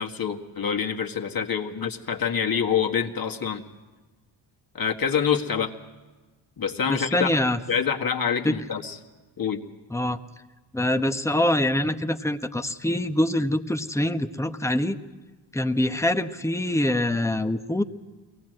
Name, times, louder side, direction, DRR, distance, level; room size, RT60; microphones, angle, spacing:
voice 1, 0.0-3.6 4.7-5.7 6.6-7.3 7.7-9.0 9.4-9.6, left 7 dB, 45° left, 3 dB, 1.9 m, -26 dB
voice 2, 6.9-7.6 8.4-8.5 9.9-10.2 10.7-15.0 15.5-17.8, left 1 dB, 5° left, 7 dB, 1.2 m, -24 dB
22.5 x 18.0 x 7.8 m, 1.3 s
supercardioid pair, 60°, 49 cm